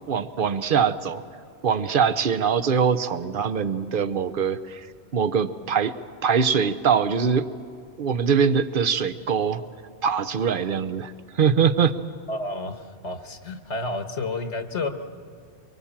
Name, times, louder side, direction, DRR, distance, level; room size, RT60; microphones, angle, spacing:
voice 1, 0.1-1.2 1.6-4.9 5.1-5.9 6.2-7.5 8.0-9.6 10.0-11.9, right 6 dB, 50° right, 13 dB, 1.0 m, -23 dB
voice 2, 12.3-14.9, left 2 dB, 75° left, 7 dB, 1.6 m, -30 dB
24.0 x 24.0 x 7.3 m, 2.2 s
omnidirectional pair, 1.2 m